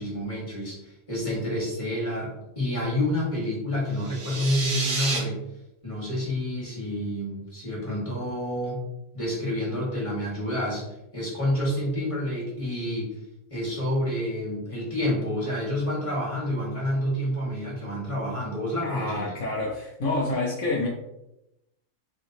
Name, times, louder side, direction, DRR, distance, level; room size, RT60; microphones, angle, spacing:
voice 1, 0.0-5.4 5.8-8.8 9.1-10.8 11.1-13.1 13.5-19.3, left 1 dB, 25° left, -5 dB, 1.4 m, -28 dB
sound 1, 3.9-5.2, right 3 dB, 70° right, 1.3 m, -29 dB
voice 2, 18.8-20.9, left 2 dB, 65° left, -4 dB, 1.0 m, -28 dB
4.1 x 3.4 x 2.7 m, 0.88 s
omnidirectional pair, 1.4 m